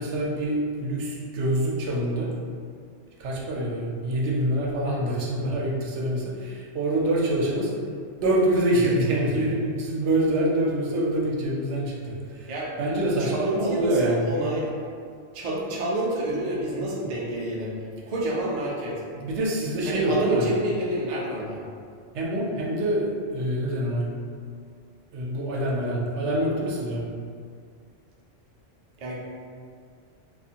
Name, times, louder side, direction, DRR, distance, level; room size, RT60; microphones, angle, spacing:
voice 1, 0.0-2.3 3.2-7.7 8.2-12.5 12.8-14.3 19.2-20.5 22.1-24.1 25.1-27.0, right 1 dB, 75° right, -4 dB, 0.8 m, -25 dB
voice 2, 13.2-14.7 15.3-17.7 18.1-19.0 19.9-21.6 29.0-29.2, right 1 dB, 60° right, -4 dB, 0.4 m, -28 dB
2.5 x 2.4 x 2.7 m, 2.1 s
omnidirectional pair, 1.2 m